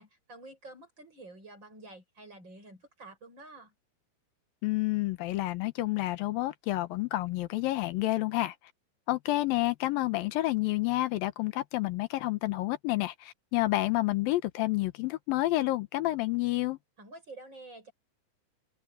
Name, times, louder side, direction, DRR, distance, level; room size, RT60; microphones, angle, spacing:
voice 1, 0.0-3.7 17.0-17.9, right 2 dB, 30° right, 6.9 m, -49 dB
voice 2, 4.6-8.5 9.1-16.8, left 17 dB, 80° left, 2.7 m, -29 dB
open air
omnidirectional pair, 4.2 m